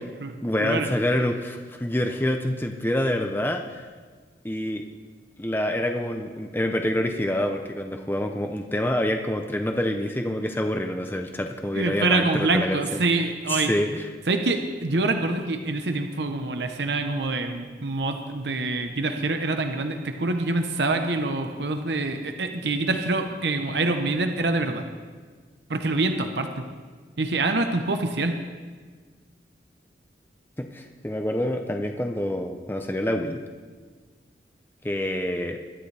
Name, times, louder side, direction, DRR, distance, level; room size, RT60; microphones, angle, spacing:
voice 1, 0.4-3.8 4.4-4.8 5.4-13.0 13.5-14.1 30.6-33.4 34.8-35.6, left 1 dB, 10° left, 4 dB, 0.6 m, -27 dB
voice 2, 11.7-13.7 14.3-24.8 25.7-26.6 27.2-28.4, right 2 dB, 80° right, 6 dB, 0.9 m, -25 dB
21.5 x 12.0 x 3.4 m, 1.5 s
head